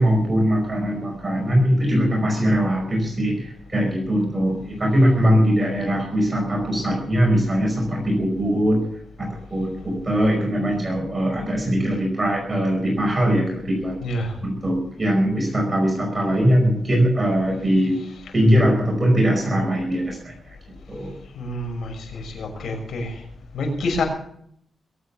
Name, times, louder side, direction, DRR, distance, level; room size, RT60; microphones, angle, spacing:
voice 1, 0.0-8.9 9.2-18.0 18.3-20.5 20.9-21.1, equal, 25° right, 0 dB, 5.1 m, -21 dB
voice 2, 14.0-14.4 21.3-23.2 23.5-24.0, left 2 dB, 85° left, 2 dB, 6.3 m, -27 dB
22.0 x 8.9 x 7.1 m, 0.67 s
wide cardioid pair, 115°, 0 cm